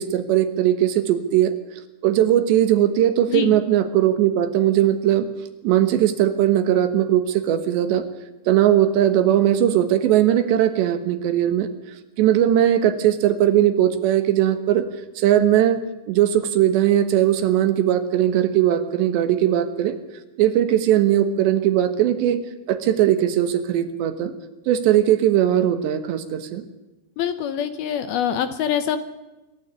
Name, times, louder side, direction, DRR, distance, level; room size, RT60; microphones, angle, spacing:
voice 1, 0.0-1.5 2.0-5.3 5.6-8.0 8.5-11.7 12.2-14.8 15.2-15.8 16.1-20.0 20.4-22.4 22.7-24.3 24.7-26.6, right 11 dB, 75° right, 10 dB, 3.5 m, -19 dB
voice 2, 27.2-29.0, left 9 dB, 75° left, 10 dB, 2.5 m, -24 dB
26.0 x 13.0 x 8.3 m, 1.1 s
omnidirectional pair, 5.2 m